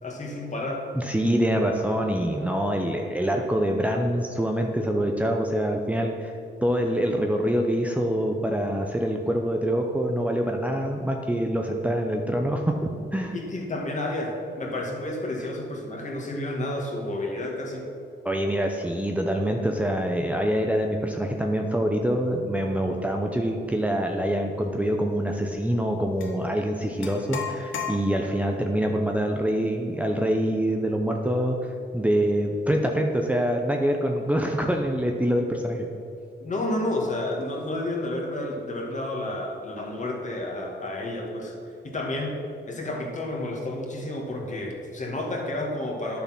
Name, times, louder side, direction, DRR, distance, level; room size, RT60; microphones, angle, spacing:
voice 1, 0.0-0.8 13.3-17.9 36.4-41.5 41.8-42.4 42.7-46.2, left 1 dB, 40° left, 0 dB, 2.1 m, -31 dB
voice 2, 0.9-6.3 6.6-12.8 13.1-13.3 18.2-31.6 31.9-35.9, equal, 5° right, 2 dB, 0.7 m, -25 dB
sound 1, 26.2-26.4 27.0-28.5, left 6 dB, 85° left, 1.3 m, -34 dB
10.5 x 6.9 x 6.1 m, 2.6 s
cardioid pair, 110°, 19 cm